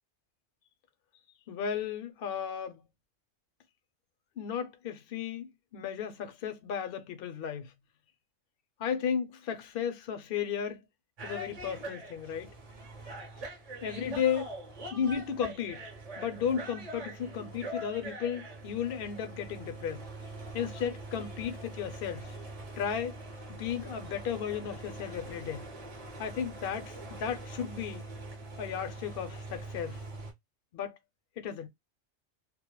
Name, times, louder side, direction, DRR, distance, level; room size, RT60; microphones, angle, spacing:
voice 1, 1.5-2.8 4.4-7.7 8.8-10.8 11.2-12.5 13.8-14.5 14.9-15.9 16.2-20.0 20.5-22.4 22.8-23.2 23.6-25.7 26.2-28.0 28.6-30.0 30.7-31.0 31.4-31.7, left 8 dB, 65° left, 0.7 m, -34 dB
sound 1, 11.2-30.3, right 2 dB, 40° right, 0.7 m, -43 dB
2.2 x 2.0 x 2.9 m
omnidirectional pair, 1.2 m